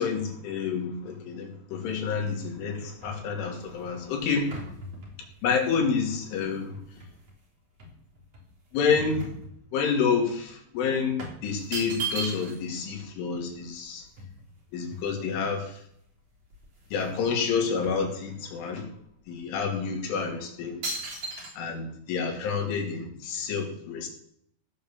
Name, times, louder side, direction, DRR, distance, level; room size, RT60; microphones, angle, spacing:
voice 1, 0.0-4.6 5.4-6.8 8.7-9.4 9.7-14.1 14.7-15.8 16.9-18.9 19.3-21.0 21.6-24.1, left 5 dB, 85° left, 1 dB, 5.2 m, -29 dB
sound 1, 2.2-7.4 7.8-10.0 10.3-10.5 11.2-12.8 13.1-13.2 13.4-15.5 16.1-16.2 16.4-17.2 17.5-18.7 19.3-19.4 20.0-20.3 20.8-21.5, right 2 dB, 35° right, 4.3 m, -38 dB
17.0 x 8.1 x 7.2 m, 0.69 s
omnidirectional pair, 5.4 m